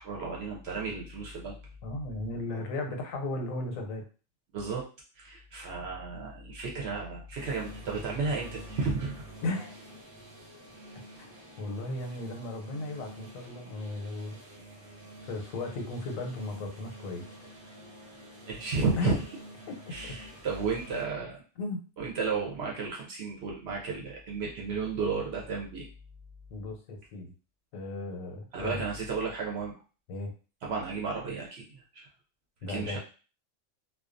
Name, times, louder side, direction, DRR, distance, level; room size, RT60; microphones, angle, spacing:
voice 1, 0.0-1.5 4.5-4.8 5.2-9.2 18.5-19.2 19.9-21.4 22.0-25.9 28.5-29.7 30.6-32.1 32.7-33.0, right 4 dB, 65° right, -2 dB, 0.7 m, -33 dB
voice 2, 1.8-4.0 9.4-9.8 11.1-11.3 11.6-14.4 15.3-17.2 19.0-19.2 19.7-20.2 21.6-21.9 26.5-27.3 27.7-28.8 30.1-30.3 32.6-33.0, left 2 dB, 90° left, 3 dB, 1.0 m, -35 dB
sound 1, 7.3-21.0, right 1 dB, 20° right, 0.6 m, -48 dB
2.3 x 2.2 x 2.4 m, 0.36 s
omnidirectional pair, 1.4 m